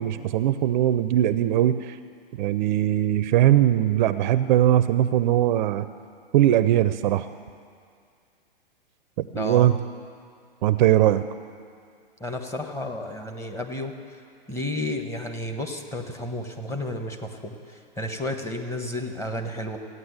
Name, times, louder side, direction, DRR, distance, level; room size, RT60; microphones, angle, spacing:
voice 1, 0.0-2.0 2.4-5.9 6.3-7.3 9.3-9.7 10.6-11.2, right 12 dB, 50° right, 13 dB, 0.5 m, -20 dB
voice 2, 9.3-9.7 12.2-13.9 14.5-19.8, left 1 dB, 10° left, 4 dB, 1.3 m, -32 dB
15.0 x 9.5 x 8.1 m, 2.2 s
hypercardioid pair, 120°, 29 cm